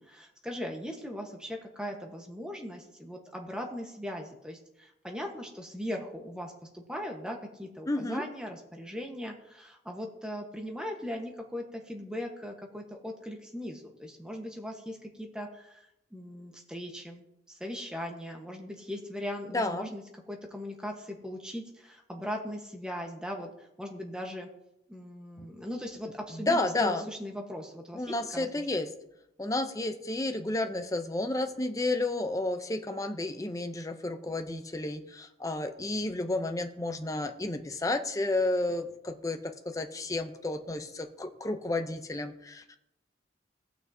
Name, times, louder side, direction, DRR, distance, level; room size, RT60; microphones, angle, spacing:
voice 1, 0.0-24.5 24.9-28.7, equal, 5° right, 2 dB, 1.1 m, -39 dB
voice 2, 7.9-8.2 19.5-19.9 26.3-27.0 27.9-28.9 29.4-42.8, left 2 dB, 20° left, 6 dB, 0.6 m, -31 dB
18.0 x 6.1 x 2.7 m, 0.85 s
head